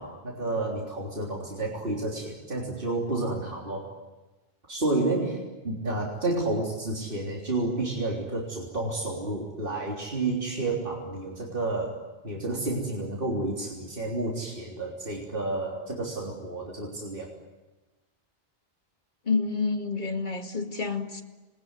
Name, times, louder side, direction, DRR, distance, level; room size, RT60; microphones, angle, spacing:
voice 1, 0.0-3.9 4.7-12.0 12.2-17.3, right 2 dB, 60° right, 3.8 m, -30 dB
voice 2, 19.3-21.2, left 4 dB, 50° left, 2.6 m, -28 dB
27.0 x 21.5 x 9.8 m
omnidirectional pair, 1.0 m